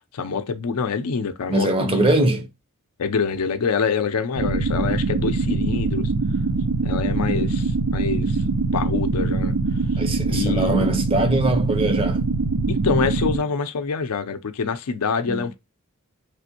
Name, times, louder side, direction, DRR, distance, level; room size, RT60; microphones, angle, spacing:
voice 1, 0.1-2.1 3.0-6.1 6.8-8.4 8.7-9.5 10.3-10.9 12.7-15.5, left 5 dB, 85° left, 0.5 m, -26 dB
voice 2, 1.5-2.5 10.0-12.2 15.3-15.5, right 2 dB, 25° right, 0.6 m, -22 dB
sound 1, 4.4-13.4, right 3 dB, 85° right, 0.6 m, -23 dB
3.4 x 2.5 x 2.7 m
head